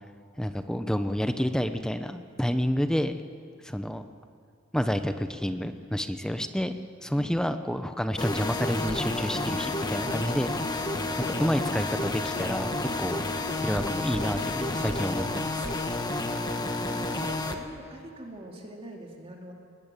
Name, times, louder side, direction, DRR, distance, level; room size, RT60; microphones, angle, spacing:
voice 1, 0.4-3.2 3.6-4.0 4.7-6.7 7.0-10.5 11.4-12.7 13.0-13.2 13.6-15.7, equal, 5° left, 9 dB, 0.9 m, -29 dB
voice 2, 7.1-7.5 16.2-19.5, right 1 dB, 30° right, 0 dB, 2.7 m, -44 dB
sound 1, 8.2-17.5, left 2 dB, 20° left, 1.5 m, -30 dB
22.5 x 20.5 x 9.0 m, 2.2 s
head